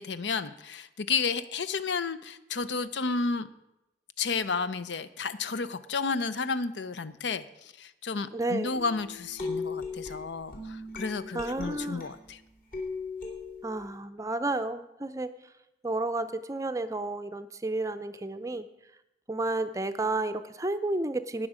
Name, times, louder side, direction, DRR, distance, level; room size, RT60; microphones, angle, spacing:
voice 1, 0.0-3.5 4.2-12.4, left 4 dB, 80° left, 14 dB, 0.6 m, -32 dB
voice 2, 8.3-8.8 11.3-12.1 13.6-15.5 15.8-18.7 19.3-21.5, right 2 dB, 20° right, 10 dB, 0.5 m, -31 dB
sound 1, 8.7-12.3 12.7-14.0, left 4 dB, 50° left, 2.8 m, -38 dB
18.5 x 6.3 x 5.0 m, 0.90 s
head